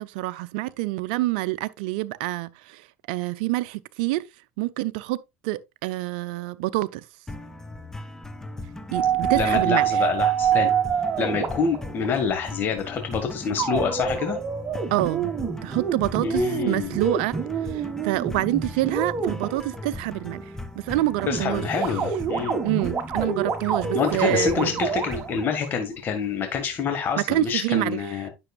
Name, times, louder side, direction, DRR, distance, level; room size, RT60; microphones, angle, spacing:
voice 1, 0.0-4.3 4.6-5.2 5.4-7.0 8.9-10.0 14.9-15.3 15.6-20.4 20.8-21.6 22.6-24.8 27.2-28.3, right 18 dB, 75° right, 0.5 m, -27 dB
sound 1, 7.3-25.4, left 1 dB, 10° left, 1.2 m, -38 dB
sound 2, 8.9-12.1 13.6-20.0 21.2-25.7, right 7 dB, 35° right, 1.7 m, -27 dB
voice 2, 9.3-10.7 11.2-14.4 16.2-16.9 21.3-22.6 23.9-28.3, left 6 dB, 45° left, 1.7 m, -27 dB
9.7 x 6.2 x 2.4 m
hypercardioid pair, 85°, 5 cm